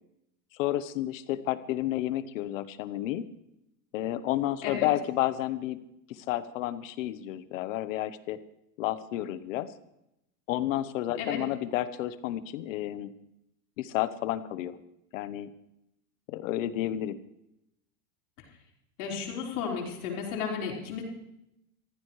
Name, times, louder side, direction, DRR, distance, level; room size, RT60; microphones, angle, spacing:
voice 1, 0.5-3.2 3.9-5.8 6.1-8.4 8.8-9.7 10.5-13.1 13.8-14.8 15.1-15.5 16.3-17.2, left 13 dB, 60° left, 14 dB, 1.1 m, -31 dB
voice 2, 19.0-21.0, left 6 dB, 75° left, -1 dB, 4.7 m, -33 dB
21.5 x 15.0 x 3.2 m, 0.84 s
supercardioid pair, 155°, 44 cm